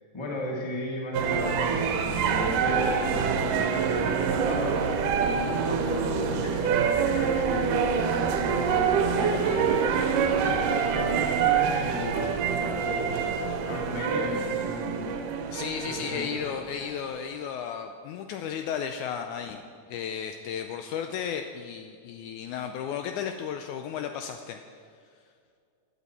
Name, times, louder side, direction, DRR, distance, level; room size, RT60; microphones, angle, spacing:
voice 1, 0.1-13.2 13.7-15.0 15.8-16.3, left 1 dB, 15° left, -2 dB, 1.0 m, -35 dB
sound 1, 1.1-17.3, right 6 dB, 80° right, 2.3 m, -26 dB
voice 2, 15.5-19.6 19.9-24.6, left 8 dB, 80° left, 6 dB, 1.8 m, -34 dB
15.5 x 9.5 x 4.2 m, 2.3 s
omnidirectional pair, 3.9 m